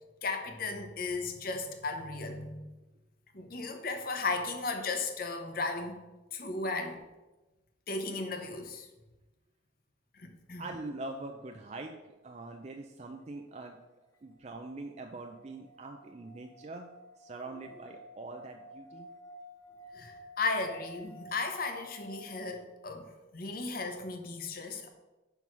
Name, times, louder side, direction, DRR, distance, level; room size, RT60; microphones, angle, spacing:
voice 1, 0.2-2.7 3.3-6.0 6.3-7.0 7.9-8.9 10.1-10.6 19.9-24.9, left 3 dB, 45° left, 6 dB, 0.8 m, -35 dB
voice 2, 10.6-13.8 14.2-16.9 17.2-19.1, right 2 dB, 35° right, 4 dB, 0.4 m, -43 dB
sound 1, 14.1-22.5, equal, 15° left, 0.7 m, -52 dB
5.4 x 4.6 x 5.9 m, 1.1 s
head